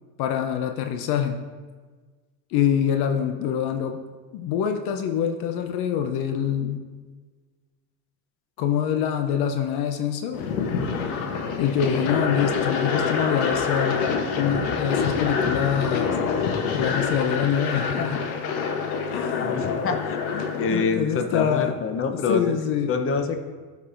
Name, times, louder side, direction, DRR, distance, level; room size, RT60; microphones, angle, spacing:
voice 1, 0.2-1.4 2.5-4.0 4.3-6.8 8.6-10.4 11.6-16.2 16.7-18.2 19.1-19.6 20.3-21.8 22.3-22.9, left 8 dB, 65° left, 5 dB, 0.7 m, -25 dB
sound 1, 10.3-20.8, left 5 dB, 90° left, 1.0 m, -26 dB
voice 2, 19.4-20.2 20.5-22.5 22.9-23.4, left 5 dB, 30° left, 6 dB, 0.8 m, -26 dB
13.5 x 5.4 x 2.6 m, 1.4 s
supercardioid pair, 95°, 41 cm